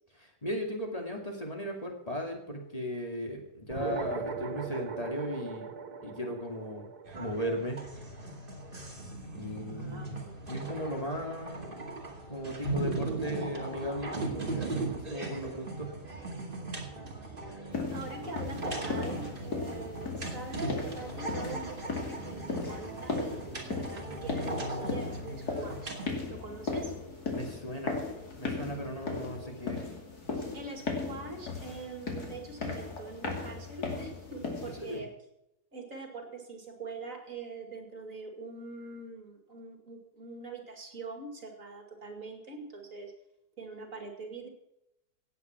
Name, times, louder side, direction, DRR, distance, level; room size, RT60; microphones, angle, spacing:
voice 1, 0.1-5.7 6.0-6.9 7.2-7.9 9.3-11.8 12.3-15.9 27.3-28.0 28.4-29.9 34.7-35.0, equal, 25° left, 1 dB, 2.5 m, -37 dB
sound 1, 3.7-8.5, right 5 dB, 80° right, 2.0 m, -39 dB
sound 2, 7.1-26.1, right 2 dB, 35° right, 2.5 m, -38 dB
voice 2, 9.7-10.3 17.2-17.6 17.9-26.0 26.3-26.9 30.5-35.1 35.7-43.1 43.6-44.5, right 3 dB, 60° right, 4 dB, 2.8 m, -43 dB
sound 3, 17.7-35.0, left 4 dB, 90° left, 3.1 m, -37 dB
17.0 x 8.4 x 5.9 m, 0.83 s
omnidirectional pair, 1.6 m